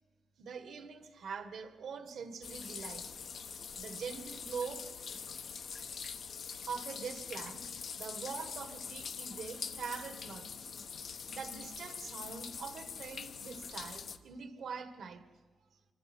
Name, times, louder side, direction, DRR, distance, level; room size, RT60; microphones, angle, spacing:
voice 1, 0.4-3.1 3.7-4.9 6.6-7.7 8.0-10.5 11.3-15.2, right 5 dB, 75° right, 1.7 m, -43 dB
sound 1, 2.4-14.2, left 6 dB, 65° left, 1.1 m, -44 dB
26.0 x 24.0 x 4.6 m
cardioid pair, 105°, 0 cm